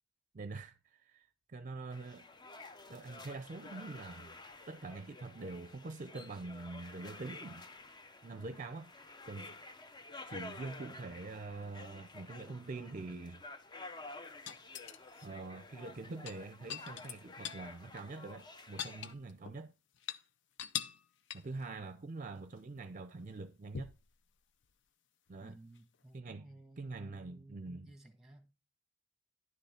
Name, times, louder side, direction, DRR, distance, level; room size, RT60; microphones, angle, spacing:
voice 1, 0.3-2.2 2.9-4.4 4.7-7.7 8.2-8.9 9.3-9.6 10.3-13.4 15.2-19.7 21.3-23.9 25.3-25.6 26.1-26.5 26.8-27.9, right 3 dB, 40° right, 0.5 m, -45 dB
sound 1, 1.9-19.1, left 3 dB, 20° left, 0.6 m, -51 dB
sound 2, 14.5-15.3 16.1-17.7 18.0-18.1 18.4-19.6 19.9-20.2 20.6-21.0 21.3-21.6 23.7-24.1 25.8-25.9, left 9 dB, 65° left, 0.6 m, -42 dB
voice 2, 25.4-28.5, right 1 dB, 5° right, 1.4 m, -56 dB
11.0 x 5.8 x 4.3 m
head